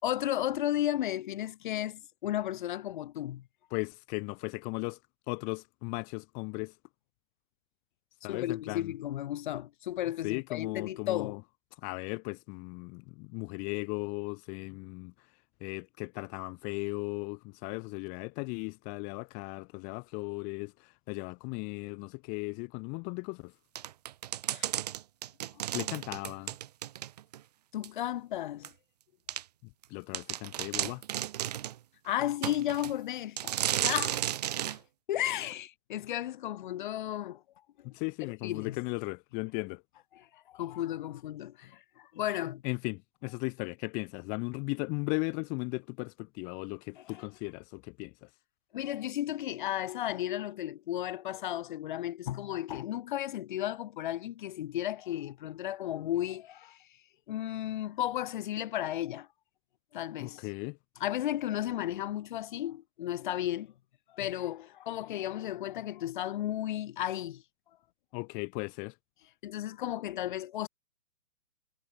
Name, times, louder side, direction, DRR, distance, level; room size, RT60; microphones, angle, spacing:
voice 1, 0.0-3.4 8.3-11.4 24.5-24.7 27.7-28.7 32.0-33.5 33.8-34.2 34.7-34.8 35.1-37.4 38.2-38.8 40.1-42.6 47.0-47.2 48.7-56.8 57.3-59.3 59.9-60.4 61.0-63.7 64.1-67.4 69.4-70.7, left 13 dB, 35° left, 6.5 m, -34 dB
voice 2, 3.7-5.0 5.3-6.8 8.2-8.9 10.2-11.4 11.8-15.1 15.6-23.5 25.7-26.5 29.9-31.0 33.9-34.0 37.8-39.8 42.6-48.3 60.2-60.8 68.1-68.9, left 34 dB, 20° left, 5.4 m, -37 dB
sound 1, 23.8-27.4 27.8-27.9 28.6-28.7 29.3-29.4 29.8-29.9 30.1-31.8 32.4-32.9 33.4-34.8, right 12 dB, 30° right, 1.5 m, -33 dB
hypercardioid pair, 170°, 43 cm